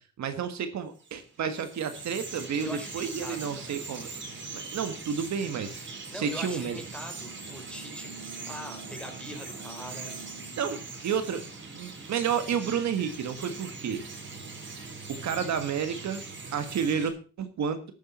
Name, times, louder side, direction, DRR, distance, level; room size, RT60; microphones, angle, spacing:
voice 1, 0.2-4.1 4.5-5.8 6.1-6.8 10.6-11.4 11.7-14.0 15.1-16.2 16.5-17.8, right 7 dB, 65° right, 9 dB, 1.6 m, -31 dB
Bird vocalization bird call bird song, 1.0-17.1, right 3 dB, 40° right, 3.9 m, -41 dB
voice 2, 2.6-3.8 6.1-8.1 8.5-10.1, equal, 5° left, 5 dB, 3.9 m, -42 dB
13.0 x 9.3 x 4.2 m, 0.35 s
cardioid pair, 90°, 30 cm